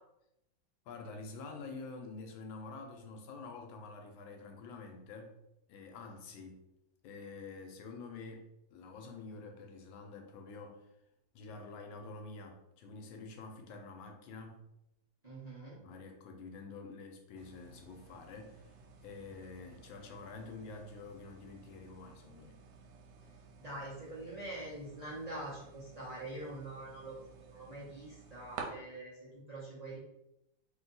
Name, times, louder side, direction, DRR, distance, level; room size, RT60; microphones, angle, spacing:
voice 1, 0.9-5.4 5.7-6.6 7.0-10.9 11.3-14.6 15.8-18.7 19.0-22.6, left 3 dB, 85° left, 4 dB, 1.4 m, -48 dB
voice 2, 15.2-15.8 23.6-30.0, right 1 dB, 30° right, -8 dB, 0.8 m, -45 dB
sound 1, 17.4-28.6, right 6 dB, 85° right, 1.5 m, -54 dB
3.2 x 2.9 x 3.9 m, 0.86 s
omnidirectional pair, 2.1 m